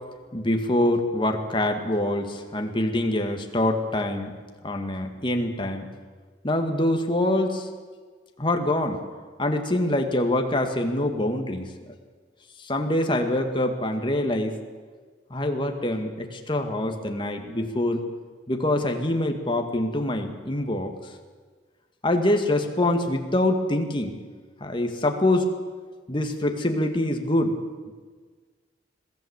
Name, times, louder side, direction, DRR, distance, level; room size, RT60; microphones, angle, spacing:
voice 1, 0.3-4.3 4.6-5.9 6.4-7.7 8.4-9.0 9.4-11.7 12.6-14.6 15.3-18.1 18.5-20.9 22.0-24.2 24.6-25.5 26.1-27.6, left 1 dB, 25° left, 4 dB, 2.0 m, -25 dB
22.0 x 15.0 x 8.2 m, 1.5 s
head